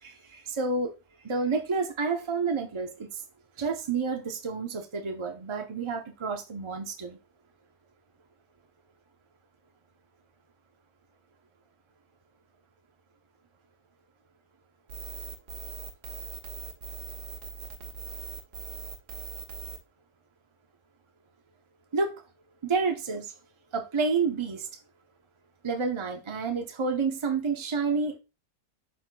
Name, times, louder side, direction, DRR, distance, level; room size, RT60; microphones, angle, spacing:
voice 1, 0.0-0.9 1.2-3.2 3.6-7.2 21.9-22.2 22.6-23.3 23.7-24.7 25.6-28.2, right 4 dB, 40° right, 0.4 m, -29 dB
sound 1, 14.9-19.8, right 6 dB, 90° right, 1.8 m, -40 dB
12.0 x 4.2 x 2.2 m
omnidirectional pair, 1.7 m